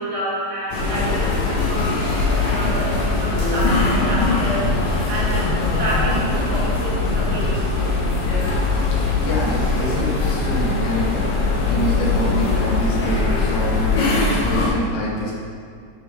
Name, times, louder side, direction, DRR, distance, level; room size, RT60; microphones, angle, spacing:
voice 1, 0.0-7.5 7.7-7.9, right 1 dB, 60° right, -7 dB, 2.6 m, -29 dB
sound 1, 0.7-14.7, left 3 dB, 65° left, 2.9 m, -21 dB
voice 2, 7.0-7.7 8.9-11.3 11.7-13.9 14.3-15.3, equal, 90° left, -4 dB, 3.2 m, -27 dB
9.0 x 5.7 x 3.5 m, 2.3 s
omnidirectional pair, 4.0 m